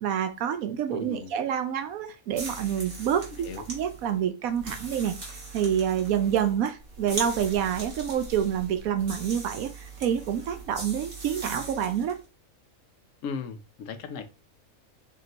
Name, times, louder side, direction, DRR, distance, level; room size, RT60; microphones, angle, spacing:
voice 1, 0.0-3.2 3.7-5.1 5.5-12.2, right 9 dB, 80° right, 7 dB, 1.1 m, -27 dB
voice 2, 0.9-1.3 3.4-3.6 13.2-14.2, left 6 dB, 70° left, 8 dB, 1.0 m, -36 dB
sound 1, 2.3-12.2, right 2 dB, 40° right, 1.6 m, -40 dB
3.6 x 2.9 x 3.8 m, 0.30 s
omnidirectional pair, 1.5 m